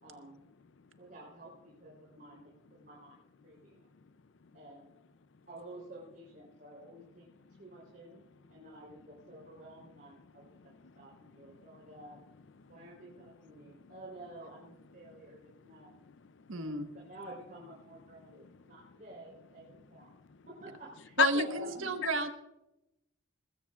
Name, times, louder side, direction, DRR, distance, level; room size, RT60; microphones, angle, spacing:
voice 1, 0.0-0.4 1.0-1.5 1.8-3.2 3.4-3.8 4.5-4.9 5.5-7.3 7.6-8.2 8.5-10.5 11.0-12.2 12.7-15.9 16.5-20.1 20.5-21.9, right 1 dB, 45° right, 3.6 m, -50 dB
voice 2, 9.4-9.9 10.2-12.2 12.5-14.0 14.9-15.4 15.7-16.7 18.2-19.0 19.7-20.4 21.2-21.3 22.0-22.1, left 8 dB, 60° left, 0.5 m, -40 dB
voice 3, 16.5-16.9 21.2-22.3, right 3 dB, 80° right, 1.5 m, -31 dB
20.5 x 15.5 x 2.4 m
head